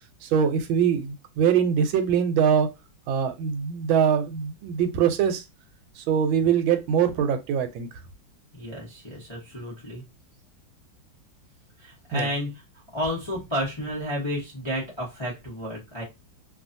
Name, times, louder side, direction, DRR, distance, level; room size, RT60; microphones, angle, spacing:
voice 1, 0.2-2.7 3.1-5.4 6.0-7.9 12.1-12.3, right 8 dB, 90° right, 1.4 m, -23 dB
voice 2, 8.5-10.0 11.8-12.6 12.9-16.0, equal, 35° left, 0.4 m, -31 dB
3.1 x 2.4 x 2.6 m
omnidirectional pair, 2.1 m